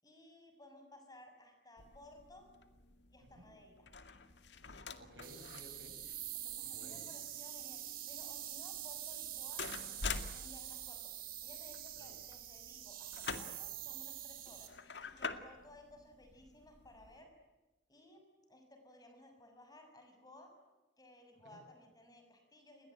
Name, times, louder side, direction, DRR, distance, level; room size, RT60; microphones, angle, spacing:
voice 1, 0.0-2.5 3.1-3.9 6.3-17.3 17.9-18.2 18.5-20.5 21.0-22.9, left 1 dB, 20° left, 5 dB, 6.5 m, -58 dB
sound 1, 1.8-17.2, left 4 dB, 70° left, 2.2 m, -48 dB
voice 2, 5.0-6.0 6.6-7.1 11.9-12.1 21.4-21.6, equal, 70° right, 5 dB, 7.7 m, -57 dB
sound 2, 5.2-14.7, right 12 dB, 55° right, 4.2 m, -46 dB
30.0 x 22.0 x 9.0 m, 1.1 s
head